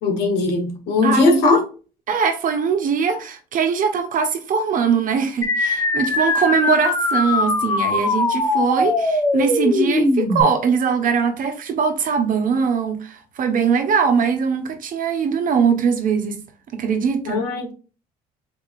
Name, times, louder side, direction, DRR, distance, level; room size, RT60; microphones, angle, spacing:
voice 1, 0.0-1.6 17.3-17.7, left 3 dB, 80° left, 1.3 m, -19 dB
voice 2, 1.0-1.6 2.1-16.4 16.7-17.4, right 6 dB, 55° right, 1.0 m, -21 dB
sound 1, 5.4-10.4, left 2 dB, 20° left, 0.8 m, -21 dB
4.2 x 3.6 x 2.4 m
cardioid pair, 110°, 17 cm